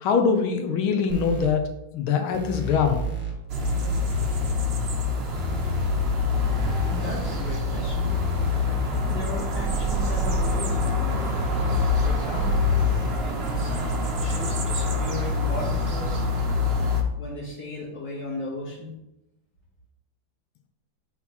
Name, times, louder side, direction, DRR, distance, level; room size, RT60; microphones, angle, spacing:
voice 1, 0.0-1.6 1.9-3.0, left 6 dB, 85° left, 6 dB, 1.6 m, -23 dB
sound 1, 1.1-1.5 2.3-3.3 3.6-4.5 5.3-7.5 8.1-9.2 9.6-10.5 11.1-13.1, right 2 dB, 5° right, 0.9 m, -31 dB
sound 2, 3.5-17.0, left 3 dB, 75° right, 0.5 m, -25 dB
voice 2, 6.9-8.1 9.1-11.4 12.0-12.6 13.2-16.3 17.2-19.0, left 1 dB, 60° left, -9 dB, 2.2 m, -36 dB
4.4 x 4.3 x 5.5 m, 0.85 s
omnidirectional pair, 2.3 m